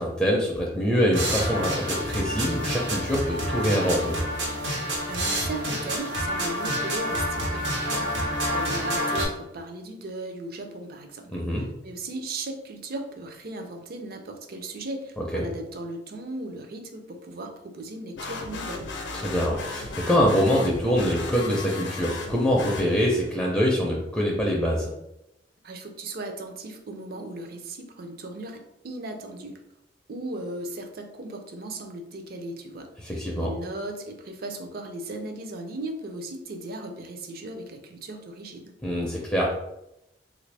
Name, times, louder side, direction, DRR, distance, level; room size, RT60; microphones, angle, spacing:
voice 1, 0.0-4.2 11.3-11.6 15.2-15.5 19.1-24.9 33.0-33.5 38.8-39.5, equal, 5° left, -3 dB, 0.4 m, -24 dB
sound 1, 1.1-9.3, equal, 85° right, 0.9 m, -28 dB
voice 2, 5.1-18.9 25.6-29.5 30.1-38.7, right 2 dB, 55° right, 5 dB, 0.5 m, -37 dB
sound 2, 18.2-23.4, left 3 dB, 75° left, 0.5 m, -36 dB
3.2 x 2.5 x 3.2 m, 0.87 s
head